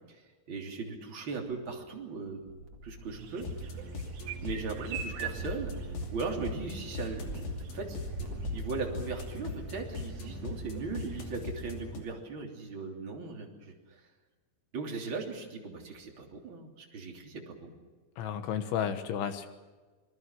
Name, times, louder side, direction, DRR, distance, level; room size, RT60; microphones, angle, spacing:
voice 1, 0.5-2.4 2.8-3.8 4.4-5.7 6.1-7.3 7.7-8.0 8.5-14.0 14.7-17.7, right 4 dB, 30° right, 1 dB, 3.1 m, -38 dB
sound 1, 2.4-3.9 4.2-9.5 9.8-9.9, right 2 dB, 55° right, 1.3 m, -43 dB
sound 2, 3.1-11.4, right 8 dB, 75° right, 4.4 m, -46 dB
sound 3, 3.4-12.0, left 2 dB, 55° left, 4.2 m, -40 dB
voice 2, 18.2-19.5, left 8 dB, 75° left, 9 dB, 3.4 m, -32 dB
26.5 x 21.0 x 6.4 m, 1.3 s
omnidirectional pair, 5.8 m